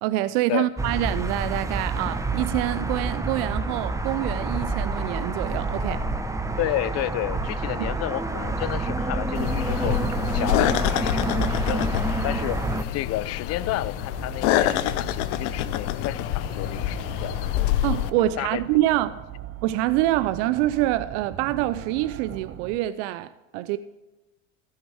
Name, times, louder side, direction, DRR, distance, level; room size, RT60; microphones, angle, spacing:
voice 1, 0.0-6.0 7.8-7.9 17.8-19.2 19.6-23.8, right 15 dB, 60° right, 0.7 m, -26 dB
sound 1, 0.8-12.8, right 2 dB, 10° right, 1.0 m, -28 dB
voice 2, 6.6-10.0 10.3-12.6 12.9-17.5 18.2-18.6, left 15 dB, 40° left, 0.6 m, -31 dB
sound 2, 9.3-18.1, left 13 dB, 60° left, 0.9 m, -26 dB
sound 3, 12.6-22.8, right 10 dB, 35° right, 1.1 m, -41 dB
15.0 x 13.0 x 3.5 m
hypercardioid pair, 85°, 39 cm